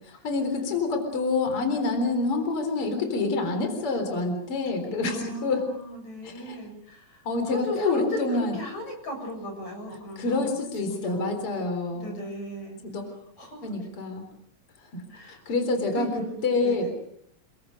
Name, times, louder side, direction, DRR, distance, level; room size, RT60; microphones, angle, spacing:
voice 1, 0.0-5.6 6.2-6.6 7.2-8.6 10.2-12.2 12.8-13.0 13.6-14.3 14.9-15.0 15.3-16.1 16.4-16.9, left 3 dB, 45° left, 5 dB, 4.8 m, -27 dB
voice 2, 5.0-11.4 11.9-12.8 13.1-13.8 15.1-15.4 15.9-16.9, equal, 70° left, 4 dB, 9.0 m, -37 dB
29.5 x 22.5 x 6.6 m, 0.73 s
omnidirectional pair, 3.4 m